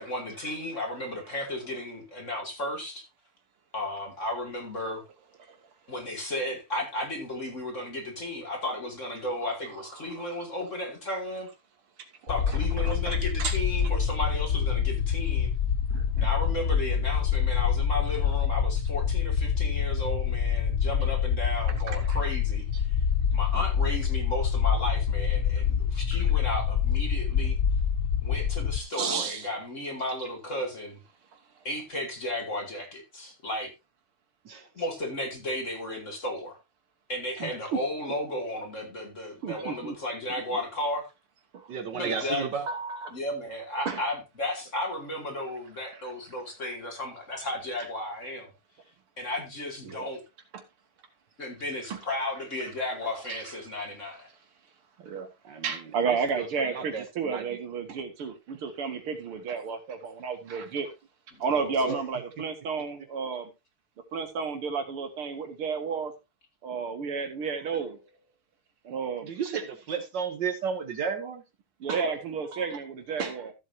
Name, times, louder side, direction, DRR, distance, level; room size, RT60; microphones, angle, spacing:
voice 1, 0.0-3.0 3.7-5.0 5.9-11.5 12.3-15.5 16.2-23.0 23.3-27.6 28.2-31.0 31.6-33.7 34.7-36.6 37.1-41.1 41.9-42.5 43.1-48.5 49.2-50.2 51.4-54.3 61.3-62.0, left 1 dB, 35° left, 2.9 m, -34 dB
sound 1, 12.3-28.8, left 7 dB, 65° left, 0.8 m, -26 dB
voice 2, 12.5-13.5 15.9-16.3 21.9-22.0 28.9-29.4 37.4-37.5 39.4-39.9 41.5-41.8 42.6-43.1 43.9-44.0 49.9-50.1 51.9-52.0 53.3-53.4 55.0-55.3 55.6-60.9 61.4-63.5 64.1-66.1 66.6-68.1 68.8-69.3 71.8-73.5, right 5 dB, 85° right, 2.8 m, -32 dB
voice 3, 41.7-42.7 55.4-57.6 69.2-71.4, right 6 dB, 60° right, 1.6 m, -33 dB
14.5 x 7.9 x 2.8 m
omnidirectional pair, 2.3 m